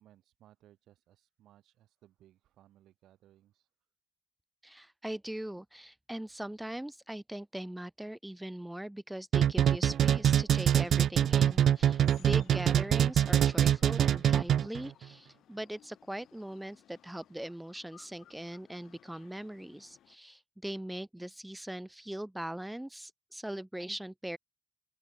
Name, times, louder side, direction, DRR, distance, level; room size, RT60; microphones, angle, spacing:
voice 1, 0.0-3.7, right 13 dB, 85° right, 5.7 m, -63 dB
voice 2, 4.6-24.4, right 1 dB, 5° right, 1.1 m, -41 dB
sound 1, 9.3-14.8, right 10 dB, 60° right, 0.4 m, -24 dB
sound 2, 11.5-20.2, left 11 dB, 70° left, 4.0 m, -61 dB
open air
cardioid pair, 150°, 0 cm